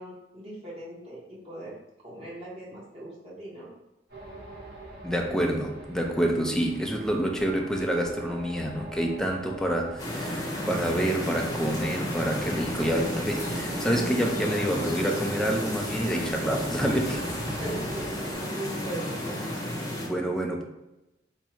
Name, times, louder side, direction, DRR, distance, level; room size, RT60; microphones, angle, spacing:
voice 1, 0.0-3.7 17.6-19.4, right 1 dB, 30° right, 0.9 m, -39 dB
sound 1, 4.1-18.3, right 2 dB, 55° right, 1.4 m, -43 dB
voice 2, 5.0-17.2 20.0-20.6, right 1 dB, 5° left, 0.3 m, -27 dB
sound 2, 10.0-20.1, left 1 dB, 20° left, 0.7 m, -32 dB
3.5 x 2.0 x 4.3 m
head